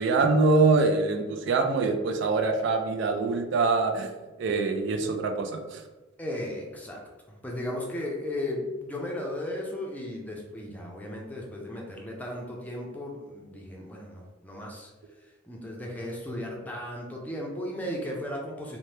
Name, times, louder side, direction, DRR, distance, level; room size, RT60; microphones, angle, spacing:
voice 1, 0.0-4.1 4.4-5.8, right 3 dB, 65° right, 5 dB, 0.3 m, -24 dB
voice 2, 6.2-7.0 7.3-14.9 15.5-18.8, left 1 dB, 10° left, -2 dB, 0.5 m, -35 dB
2.8 x 2.1 x 3.2 m, 1.2 s
head